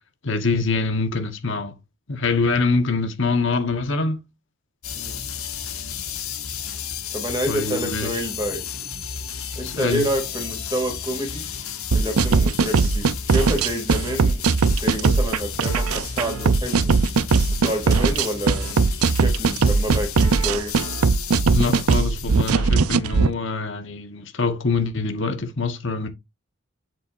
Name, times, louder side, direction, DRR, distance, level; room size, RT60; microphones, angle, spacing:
voice 1, 0.2-1.7 2.1-4.2 7.5-8.1 9.6-10.1 21.5-26.1, left 4 dB, 55° left, 1.3 m, -24 dB
sound 1, 4.8-22.5, left 7 dB, 75° left, 1.7 m, -33 dB
voice 2, 7.1-8.6 9.6-11.5 11.9-16.9 17.5-18.8 19.1-20.8, equal, 20° right, 2.5 m, -28 dB
sound 2, 11.9-23.3, right 4 dB, 85° right, 0.6 m, -19 dB
7.9 x 7.7 x 2.6 m
head